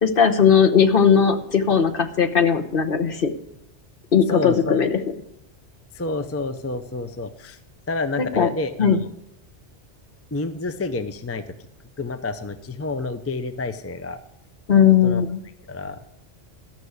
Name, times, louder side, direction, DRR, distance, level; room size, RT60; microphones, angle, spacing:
voice 1, 0.0-3.3 4.1-4.9 8.4-8.5 8.8-9.0 14.7-15.4, left 7 dB, 50° left, 5 dB, 1.1 m, -18 dB
voice 2, 4.3-4.8 5.9-7.6 7.9-9.0 10.3-11.5 12.0-14.2 15.0-15.2 15.7-16.0, left 3 dB, 20° left, 9 dB, 0.5 m, -29 dB
13.5 x 6.2 x 8.0 m, 0.80 s
omnidirectional pair, 1.2 m